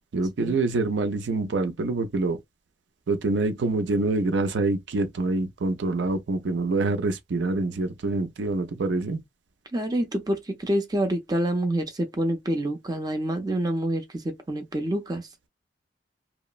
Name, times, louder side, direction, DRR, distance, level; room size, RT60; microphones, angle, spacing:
voice 1, 0.1-2.4 3.1-9.2, right 3 dB, 80° right, 0.5 m, -26 dB
voice 2, 9.7-14.0 14.5-15.2, right 1 dB, 20° right, 0.5 m, -27 dB
2.9 x 2.0 x 2.3 m
head